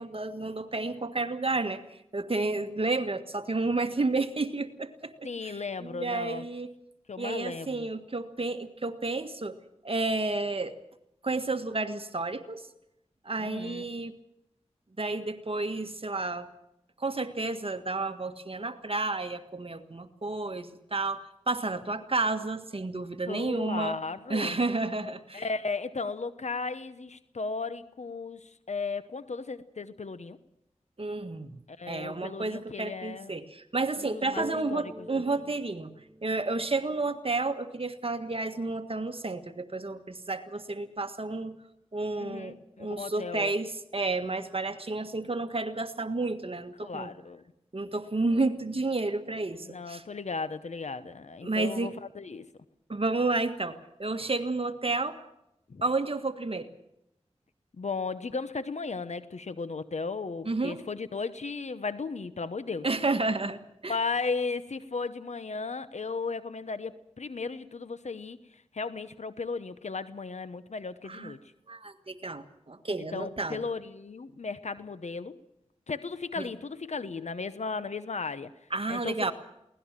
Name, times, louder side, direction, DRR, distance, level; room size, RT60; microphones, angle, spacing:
voice 1, 0.0-1.8 2.1-6.7 7.2-9.5 9.8-10.7 11.2-12.6 13.3-14.1 15.0-16.5 17.0-24.0 24.3-25.4 31.0-31.6 31.9-35.9 36.2-41.6 41.9-47.1 47.7-50.0 51.4-51.9 52.9-55.2 55.8-56.7 60.5-60.8 62.8-64.0 71.1-71.3 71.7-73.6 76.4-76.5 78.7-79.3, right 3 dB, 50° right, 8 dB, 1.6 m, -31 dB
voice 2, 5.2-6.5 7.1-7.9 13.4-13.9 23.3-24.6 25.3-30.4 31.7-33.3 34.0-35.2 42.2-43.5 46.8-47.4 49.6-52.5 55.7-55.8 57.8-62.9 63.9-71.4 73.1-75.4 75.9-78.5 78.9-79.3, left 4 dB, 75° left, 13 dB, 1.0 m, -35 dB
sound 1, 34.4-38.0, right 1 dB, 20° right, 1.3 m, -46 dB
23.0 x 18.0 x 7.5 m, 0.82 s
cardioid pair, 45°, 12 cm